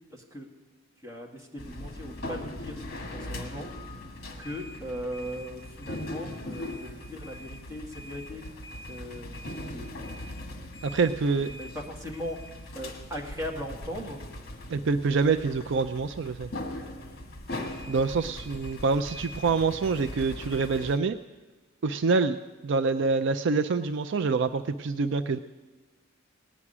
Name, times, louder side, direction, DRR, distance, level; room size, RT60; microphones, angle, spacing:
voice 1, 0.1-0.5 1.0-2.8 3.1-3.7 4.4-8.6 8.9-9.4 9.6-9.9 11.5-14.2 15.2-15.4, equal, 15° right, -1 dB, 2.0 m, -39 dB
sound 1, 1.6-21.0, left 1 dB, 50° left, 1.7 m, -40 dB
voice 2, 10.8-11.5 14.7-16.5 17.9-21.2 21.8-25.4, right 4 dB, 60° right, 11 dB, 0.4 m, -26 dB
18.5 x 6.1 x 9.7 m, 1.3 s
head